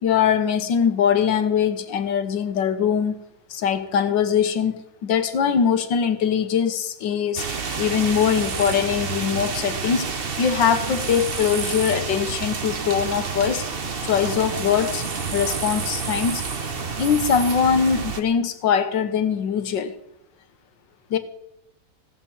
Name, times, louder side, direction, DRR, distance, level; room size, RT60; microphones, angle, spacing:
voice 1, 0.0-3.2 3.5-7.4 7.8-10.1 10.4-13.7 14.0-15.0 15.3-16.4 17.0-20.0 21.1-21.2, left 7 dB, 90° left, 9 dB, 1.8 m, -22 dB
sound 1, 7.4-18.2, right 5 dB, 40° right, 1.1 m, -29 dB
17.5 x 7.1 x 7.2 m, 0.80 s
omnidirectional pair, 1.9 m